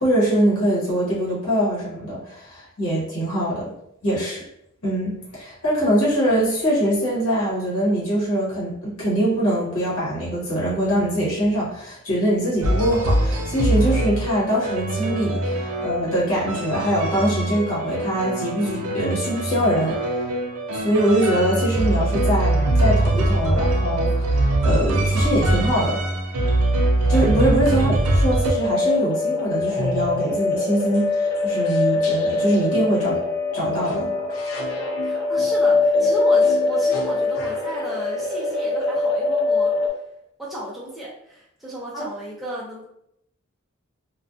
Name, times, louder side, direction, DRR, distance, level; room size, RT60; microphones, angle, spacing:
voice 1, 0.0-3.7 4.0-4.4 4.8-20.2 20.7-26.0 27.1-33.2 33.5-34.1 41.9-42.1, right 1 dB, 85° left, -6 dB, 1.0 m, -23 dB
sound 1, 12.6-28.5, right 1 dB, 90° right, 0.4 m, -22 dB
sound 2, 27.3-28.1 29.8-30.2 30.9-31.0 31.4-31.5 31.7-37.8, left 1 dB, 65° left, 0.5 m, -33 dB
sound 3, 28.4-39.9, left 3 dB, 45° left, 1.2 m, -22 dB
voice 2, 35.0-39.7 40.4-42.8, equal, ahead, -7 dB, 0.4 m, -34 dB
2.5 x 2.2 x 2.3 m, 0.76 s
head